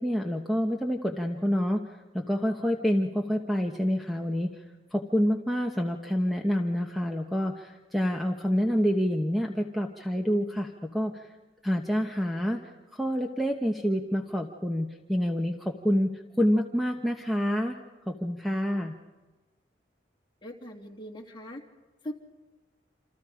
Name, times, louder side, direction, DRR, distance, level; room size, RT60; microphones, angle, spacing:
voice 1, 0.0-4.5 4.9-11.3 11.6-17.8 18.1-19.0, equal, ahead, 2 dB, 1.1 m, -27 dB
voice 2, 20.4-21.6 22.0-22.1, equal, 25° left, 1 dB, 2.9 m, -40 dB
28.0 x 27.5 x 5.1 m, 1.2 s
head